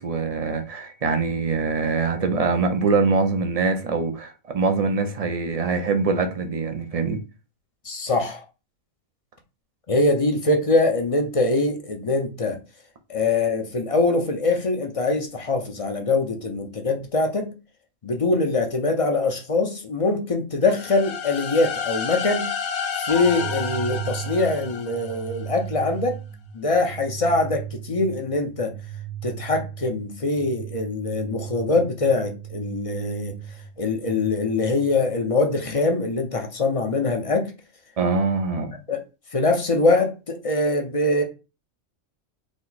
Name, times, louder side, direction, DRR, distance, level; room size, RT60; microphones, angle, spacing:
voice 1, 0.0-7.2 38.0-38.8, right 4 dB, 45° right, 0.4 m, -23 dB
voice 2, 7.8-8.4 9.9-12.6 13.1-17.5 18.0-22.5 23.0-26.2 26.5-28.7 29.2-33.3 33.8-37.5 38.9-39.0 39.3-41.2, left 2 dB, 35° left, 0.6 m, -23 dB
sound 1, 20.6-25.5, left 6 dB, 60° left, 0.9 m, -30 dB
sound 2, 23.1-35.0, right 9 dB, 80° left, 1.8 m, -36 dB
5.0 x 2.1 x 4.0 m
omnidirectional pair, 1.4 m